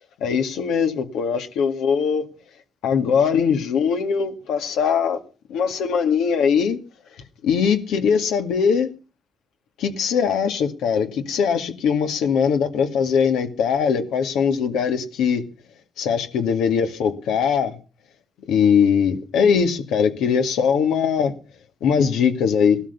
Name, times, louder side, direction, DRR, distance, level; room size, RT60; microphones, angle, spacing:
voice 1, 0.2-2.3 2.8-5.2 5.5-6.8 7.4-8.9 9.8-15.4 16.0-17.8 18.5-21.3 21.8-22.8, left 6 dB, 85° left, 2.2 m, -21 dB
17.0 x 13.0 x 5.5 m
cardioid pair, 90°, 0 cm